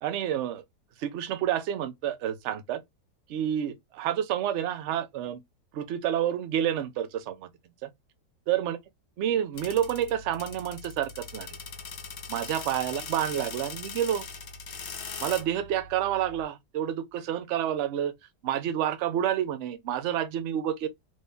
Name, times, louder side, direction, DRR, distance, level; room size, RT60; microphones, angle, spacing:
voice 1, 0.0-0.6 1.0-2.8 3.3-5.4 5.7-7.5 7.8-7.9 8.5-8.8 9.2-11.5 12.3-14.2 15.2-18.1 18.4-20.9, right 10 dB, 65° right, 0.7 m, -29 dB
sound 1, 9.5-16.4, left 5 dB, 55° left, 1.0 m, -41 dB
3.1 x 2.7 x 3.3 m
omnidirectional pair, 1.8 m